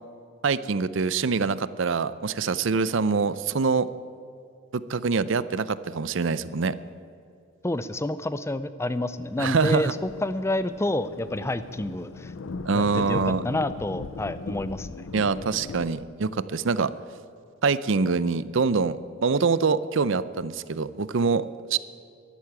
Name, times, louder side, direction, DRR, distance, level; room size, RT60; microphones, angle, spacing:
voice 1, 0.4-3.9 4.7-6.8 9.4-9.9 12.7-13.4 15.1-16.9 17.6-21.8, right 4 dB, 60° right, 16 dB, 0.5 m, -25 dB
voice 2, 7.6-12.3 12.7-15.1, left 1 dB, 10° left, 14 dB, 0.4 m, -29 dB
Thunder, 9.1-15.9, left 4 dB, 65° left, 0.5 m, -38 dB
11.5 x 11.5 x 8.8 m, 2.6 s
head